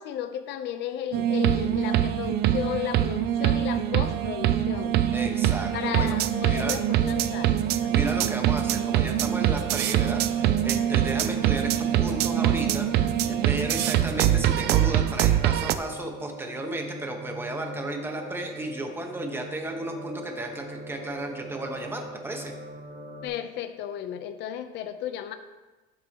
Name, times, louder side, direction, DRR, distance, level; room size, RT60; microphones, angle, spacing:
voice 1, 0.0-5.0 5.7-7.9 23.2-25.3, left 10 dB, 55° left, 9 dB, 0.8 m, -34 dB
sound 1, 1.1-15.8, right 11 dB, 50° right, 0.5 m, -24 dB
voice 2, 5.1-6.1 6.4-6.8 7.9-22.5, right 1 dB, 10° right, 3 dB, 1.3 m, -34 dB
sound 2, 5.6-23.3, right 1 dB, 30° right, 3.0 m, -41 dB
12.0 x 7.7 x 3.0 m, 1.2 s
cardioid pair, 130°, 21 cm